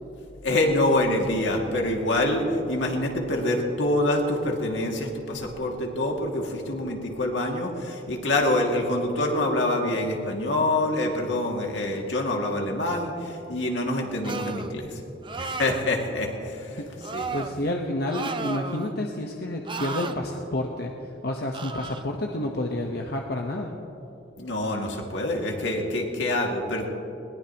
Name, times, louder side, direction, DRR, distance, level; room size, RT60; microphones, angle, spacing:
voice 1, 0.4-15.0 15.4-16.8 17.1-17.3 24.4-26.9, left 1 dB, 80° left, 1 dB, 2.3 m, -26 dB
sound 1, 14.2-14.7 15.2-15.9 17.0-17.5 18.1-18.9 19.7-20.2 21.5-22.0, right 4 dB, 25° right, 0.6 m, -33 dB
voice 2, 17.3-20.9 21.2-23.8, left 1 dB, 60° left, 1 dB, 1.1 m, -29 dB
21.5 x 19.0 x 3.0 m, 3.0 s
head